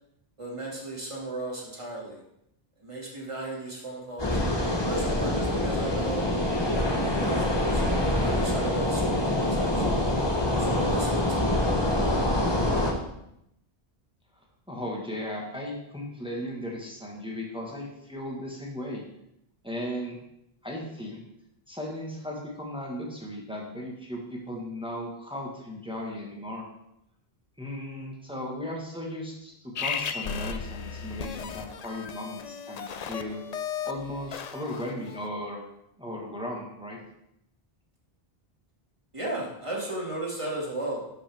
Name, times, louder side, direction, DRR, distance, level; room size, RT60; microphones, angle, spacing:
voice 1, 0.4-2.2 2.8-4.4 4.9-6.4 6.9-10.1 10.6-11.6 39.1-41.0, right 2 dB, 30° right, -3 dB, 2.2 m, -36 dB
sound 1, 4.2-12.9, left 1 dB, 25° left, 1.1 m, -25 dB
voice 2, 14.7-19.0 19.6-20.2 20.6-21.2 21.7-26.7 27.6-33.4 33.8-35.6 36.0-37.0, left 1 dB, 5° right, -2 dB, 1.5 m, -36 dB
sound 2, 29.8-35.2, left 7 dB, 50° left, 0.5 m, -35 dB
11.5 x 5.6 x 3.5 m, 0.81 s
omnidirectional pair, 1.0 m